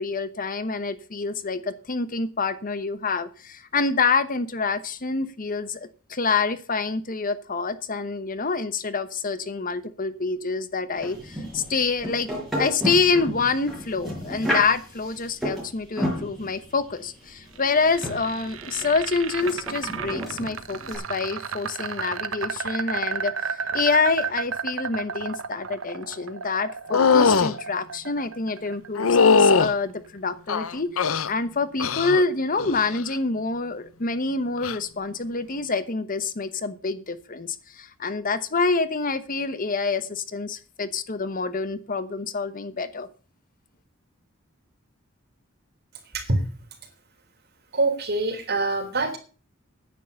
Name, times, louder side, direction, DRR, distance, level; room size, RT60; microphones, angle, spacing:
voice 1, 0.0-12.3 12.5-43.1, left 4 dB, 40° left, 13 dB, 1.1 m, -27 dB
sound 1, 10.9-21.0, equal, ahead, 6.4 m, -32 dB
sound 2, 17.5-29.6, right 6 dB, 75° right, 1.2 m, -32 dB
sound 3, 26.9-27.5 29.0-29.7 30.5-31.3 31.8-32.2 32.6-33.0 34.6-34.8, left 5 dB, 80° left, 0.8 m, -19 dB
voice 2, 47.7-49.2, right 2 dB, 50° right, 5 dB, 3.6 m, -24 dB
10.0 x 9.4 x 6.5 m, 0.38 s
head